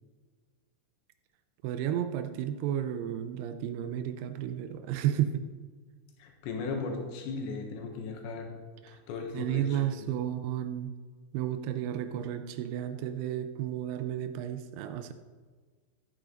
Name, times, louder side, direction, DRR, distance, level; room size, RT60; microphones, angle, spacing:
voice 1, 1.6-5.4 8.8-9.0 9.3-10.9 11.3-15.1, right 11 dB, 80° right, 9 dB, 2.4 m, -32 dB
voice 2, 6.2-8.5 8.9-10.3, left 4 dB, 80° left, 2 dB, 3.6 m, -37 dB
14.0 x 9.0 x 3.9 m, 1.5 s
omnidirectional pair, 5.1 m